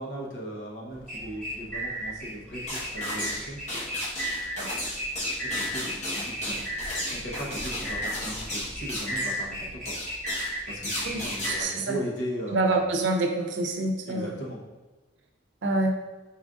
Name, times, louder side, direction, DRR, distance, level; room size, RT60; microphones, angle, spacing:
voice 1, 0.0-3.6 5.4-6.7 7.1-10.0 10.7-12.8 14.1-14.6, equal, 80° left, -3 dB, 1.0 m, -37 dB
sound 1, 0.9-11.6, equal, 5° left, 1.4 m, -35 dB
sound 2, 2.7-3.4 3.7-9.4 9.8-10.5 10.8-11.5, left 1 dB, 40° left, 1.2 m, -34 dB
voice 2, 11.0-12.0 12.5-14.3 15.6-16.0, right 2 dB, 80° right, 3 dB, 0.6 m, -27 dB
4.3 x 3.7 x 2.5 m, 1.2 s
head